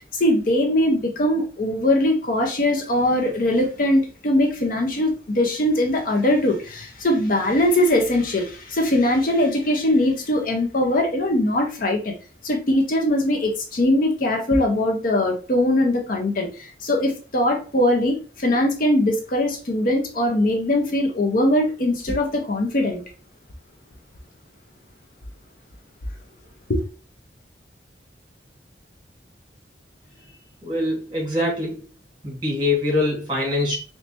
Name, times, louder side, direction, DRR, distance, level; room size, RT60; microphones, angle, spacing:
voice 1, 0.1-12.1 12.4-23.0 26.7-26.8, left 1 dB, 50° left, 0.6 m, -21 dB
voice 2, 30.6-31.8 32.2-33.8, left 2 dB, 25° right, 1.9 m, -23 dB
3.2 x 3.2 x 2.8 m
head